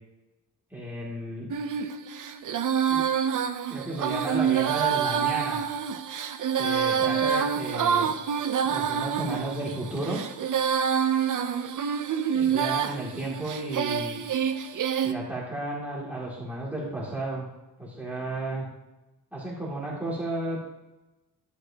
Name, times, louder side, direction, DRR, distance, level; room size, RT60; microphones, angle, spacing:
voice 1, 0.7-1.5 2.9-3.0 3.7-5.6 6.5-8.1 8.7-10.2 12.1-14.2 15.0-17.5 17.8-18.7 19.3-20.6, right 1 dB, 5° right, -6 dB, 2.6 m, -33 dB
Female singing, 1.5-15.1, right 8 dB, 50° right, 0.7 m, -27 dB
11.5 x 9.7 x 2.9 m, 1.0 s
wide cardioid pair, 165°, 41 cm